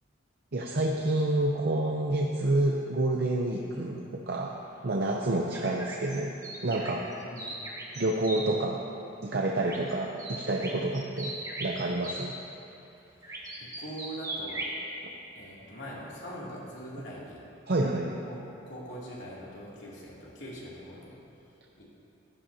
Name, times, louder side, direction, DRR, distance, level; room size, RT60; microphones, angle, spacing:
voice 1, 0.5-4.6 4.8-6.4 6.6-7.1 8.0-8.8 9.2-12.4 15.0-15.1 17.7-18.2, right 2 dB, 55° right, 0 dB, 0.7 m, -28 dB
voice 2, 3.7-4.1 7.2-7.6 13.2-14.7 15.3-17.4 18.2-18.4 18.7-21.2 21.5-21.8, equal, 65° left, -6 dB, 2.8 m, -43 dB
sound 1, 5.5-8.4 9.6-9.9 10.2-12.3 13.2-14.8, right 1 dB, 20° right, 1.5 m, -38 dB
15.0 x 12.0 x 2.9 m, 3.0 s
head